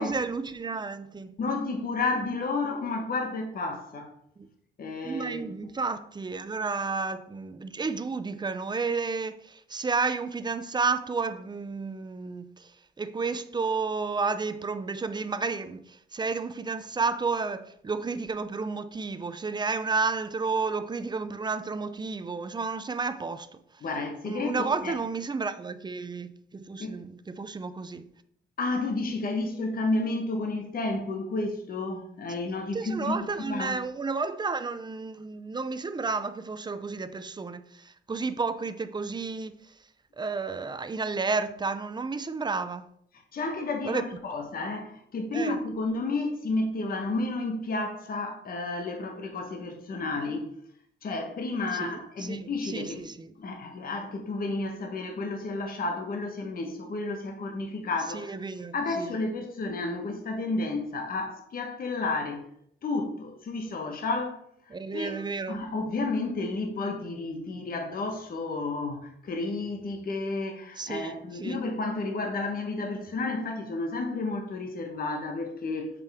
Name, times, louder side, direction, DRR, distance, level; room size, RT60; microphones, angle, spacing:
voice 1, 0.0-1.3 5.0-12.7 13.0-23.5 24.3-28.0 32.7-39.5 40.2-42.9 43.9-44.0 45.3-45.6 51.7-53.3 58.1-59.1 64.7-65.6 70.8-71.6, right 4 dB, 20° right, 0.5 m, -31 dB
voice 2, 1.4-4.1 4.8-5.4 23.8-25.0 26.8-26.9 28.6-33.8 43.3-50.5 51.0-53.1 53.4-58.3 58.7-62.4 62.8-64.4 64.9-75.9, left 3 dB, 45° left, 1.2 m, -31 dB
7.2 x 5.3 x 3.6 m
cardioid pair, 90°, 20 cm